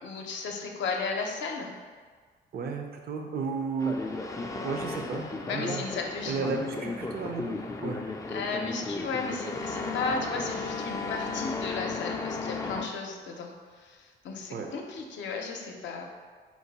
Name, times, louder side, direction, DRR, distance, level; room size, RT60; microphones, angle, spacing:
voice 1, 0.0-1.7 5.5-6.6 8.3-14.0 14.2-16.0, left 4 dB, 70° left, 1 dB, 0.6 m, -34 dB
voice 2, 2.5-4.0 4.6-5.8 6.3-7.6 7.8-8.0 14.5-14.7, right 5 dB, 50° right, 3 dB, 0.6 m, -33 dB
sound 1, 3.8-12.9, left 3 dB, 15° left, 0.4 m, -34 dB
4.5 x 2.2 x 4.0 m, 1.5 s
cardioid pair, 90°, 20 cm